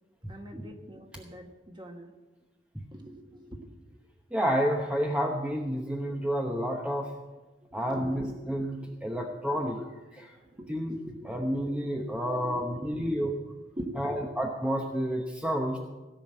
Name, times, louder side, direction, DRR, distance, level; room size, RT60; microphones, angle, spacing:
voice 1, 0.3-2.1 2.9-3.6 7.7-8.4 8.8-9.3 9.8-9.9 10.4-10.8 11.0-11.4 11.7-11.8 12.2-13.4 13.8-14.3 15.7-15.8, right 1 dB, 25° right, 3 dB, 1.5 m, -43 dB
voice 2, 4.3-7.1 7.7-9.8 10.2-10.3 10.7-11.0 11.2-13.3 14.0-15.8, equal, 5° right, 1 dB, 0.9 m, -30 dB
16.5 x 6.0 x 8.7 m, 1.2 s
head